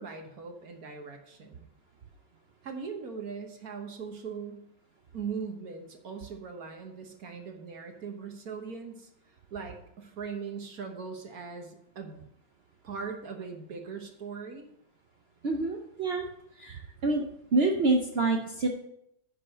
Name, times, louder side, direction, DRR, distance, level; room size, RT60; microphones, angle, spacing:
voice 1, 0.0-1.7 2.6-4.7 5.1-9.1 9.5-12.3 12.8-14.7, right 5 dB, 55° right, 4 dB, 1.5 m, -40 dB
voice 2, 15.4-16.3 16.6-17.3 17.5-18.7, right 3 dB, 80° right, 3 dB, 0.5 m, -27 dB
9.9 x 4.6 x 6.4 m, 0.77 s
omnidirectional pair, 2.1 m